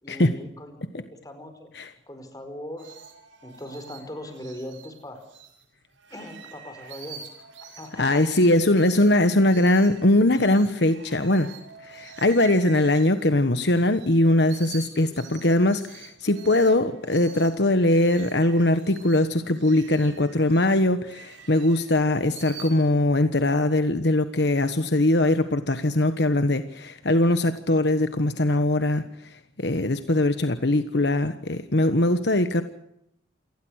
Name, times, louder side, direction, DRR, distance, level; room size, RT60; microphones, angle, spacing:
voice 1, 0.0-1.7 2.1-3.0 3.4-5.2 6.1-7.3 7.6-8.4, left 1 dB, 20° left, 7 dB, 4.9 m, -40 dB
sound 1, 2.8-5.6 6.0-14.1 14.4-22.7, right 6 dB, 90° right, 6.3 m, -46 dB
voice 2, 8.0-11.5 11.9-29.0 29.6-32.6, left 1 dB, 60° left, 10 dB, 1.3 m, -21 dB
28.5 x 19.5 x 6.5 m, 0.78 s
head